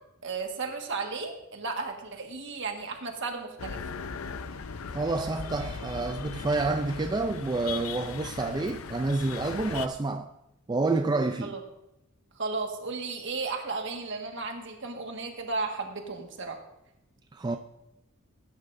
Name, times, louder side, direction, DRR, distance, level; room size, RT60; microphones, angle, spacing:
voice 1, 0.2-3.8 11.4-11.6 12.3-16.6, right 4 dB, 60° right, 1.6 m, -34 dB
sound 1, 3.6-9.9, left 5 dB, 80° left, 0.6 m, -38 dB
voice 2, 4.9-10.3 10.7-11.5 17.3-17.6, right 3 dB, 20° right, 0.4 m, -28 dB
18.0 x 9.6 x 2.6 m
head